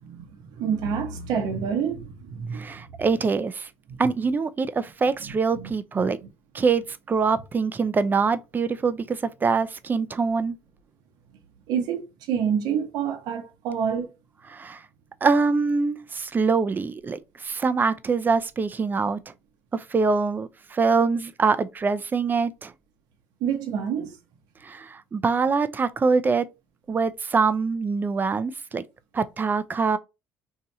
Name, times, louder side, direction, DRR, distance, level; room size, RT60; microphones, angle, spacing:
voice 1, 0.0-2.8 5.2-5.7 11.7-14.1 23.4-24.2, right 7 dB, 70° right, 0.9 m, -28 dB
voice 2, 2.5-3.7 4.0-6.2 6.5-10.6 14.5-14.8 15.2-19.2 19.7-22.7 24.6-26.5 26.9-28.8 29.1-30.0, right 4 dB, 30° right, 0.5 m, -24 dB
2.7 x 2.4 x 4.1 m
supercardioid pair, 80°, 7 cm